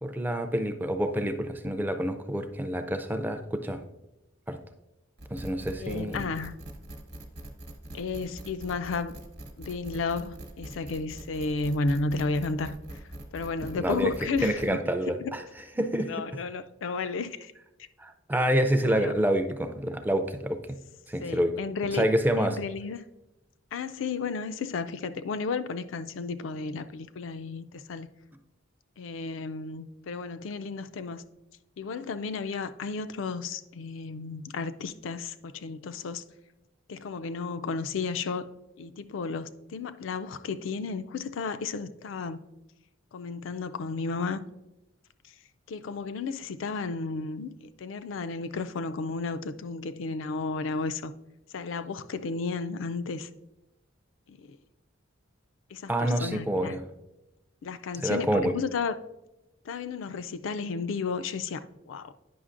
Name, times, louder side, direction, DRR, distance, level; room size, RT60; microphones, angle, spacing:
voice 1, 0.0-3.8 4.5-4.6 5.3-6.2 13.8-14.1 14.4-15.4 15.8-16.1 18.0-20.6 21.1-21.5 21.9-22.6 55.9-56.8 58.0-58.5, right 1 dB, 10° right, 0.3 m, -27 dB
sound 1, 5.2-14.7, right 1 dB, 55° right, 1.0 m, -43 dB
voice 2, 5.8-6.6 7.9-9.1 9.6-13.0 13.3-14.8 15.2-15.3 16.0-17.5 18.8-19.1 21.2-22.0 22.4-23.1 23.7-28.1 29.0-31.2 31.8-36.2 36.9-38.4 38.8-42.4 43.1-44.4 45.7-51.1 51.5-53.3 54.3-54.6 55.7-55.9 56.2-56.8 57.6-59.0 59.7-61.6 61.9-62.1, left 4 dB, 70° left, 0.4 m, -33 dB
9.4 x 5.8 x 2.5 m
head